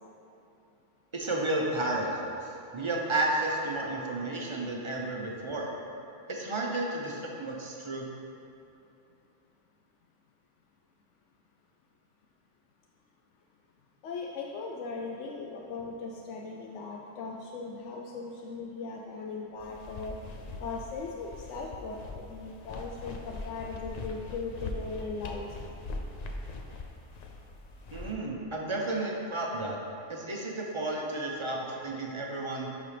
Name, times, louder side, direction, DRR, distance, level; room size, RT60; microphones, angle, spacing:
voice 1, 1.1-5.7 6.3-8.0 27.9-29.8 30.1-32.7, right 2 dB, 30° right, -2 dB, 0.7 m, -32 dB
voice 2, 14.0-20.2 20.6-25.5, left 4 dB, 80° left, -1 dB, 0.9 m, -38 dB
sound 1, 19.6-28.1, left 2 dB, 55° left, 0.5 m, -41 dB
10.5 x 4.2 x 3.3 m, 2.8 s
omnidirectional pair, 1.2 m